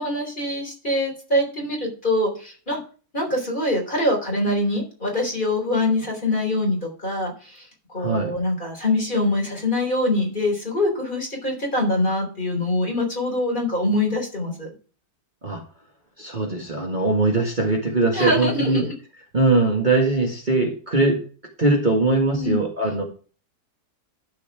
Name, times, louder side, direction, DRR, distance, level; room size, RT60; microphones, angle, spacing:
voice 1, 0.0-2.8 3.1-14.7 18.1-18.9 22.3-22.6, left 1 dB, 30° left, -1 dB, 4.1 m, -24 dB
voice 2, 8.0-8.3 15.4-15.6 16.2-18.9 19.3-21.2 21.6-23.0, right 2 dB, 30° right, -1 dB, 2.1 m, -21 dB
12.5 x 4.8 x 6.1 m, 0.38 s
omnidirectional pair, 1.7 m